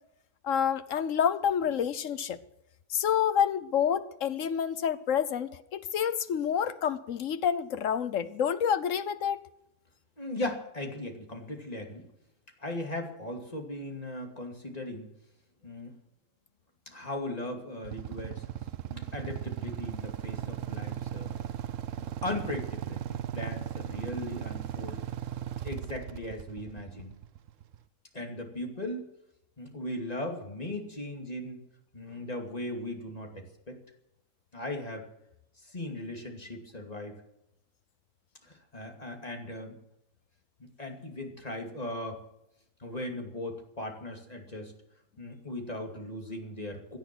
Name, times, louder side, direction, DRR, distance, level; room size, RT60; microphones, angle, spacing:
voice 1, 0.4-2.4 2.9-9.5, left 8 dB, 65° left, 1.1 m, -28 dB
voice 2, 10.2-12.1 12.6-15.1 15.6-15.9 16.9-18.4 18.9-21.3 22.0-25.0 25.6-27.1 28.1-29.1 29.6-31.6 31.9-33.8 34.5-35.1 35.6-37.1 38.4-39.7 40.6-42.2 42.8-44.7 45.2-47.0, left 1 dB, 25° left, 2.6 m, -38 dB
Motorcycle / Idling, 17.8-27.8, right 10 dB, 65° right, 1.0 m, -37 dB
17.0 x 11.5 x 6.1 m
omnidirectional pair, 1.5 m